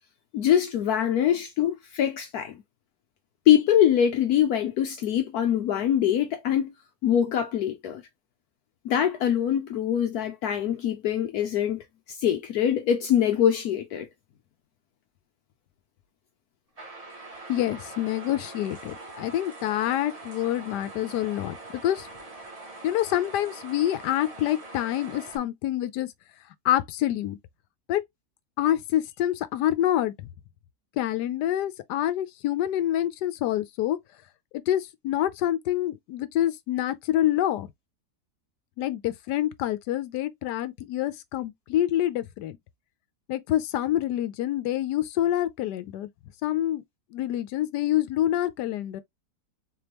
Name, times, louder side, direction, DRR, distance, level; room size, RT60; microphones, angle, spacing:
voice 1, 0.3-2.6 3.5-6.7 7.0-8.0 8.8-14.1, left 10 dB, 70° left, 1.1 m, -23 dB
sound 1, 16.8-25.4, right 2 dB, 30° right, 0.9 m, -43 dB
voice 2, 17.5-22.1 22.8-26.1 26.6-27.4 27.9-28.0 28.6-30.3 31.0-34.0 34.7-37.7 38.8-42.6 43.3-46.1 46.4-46.8 47.1-49.0, left 12 dB, 90° left, 1.2 m, -27 dB
4.0 x 3.4 x 2.9 m
omnidirectional pair, 1.8 m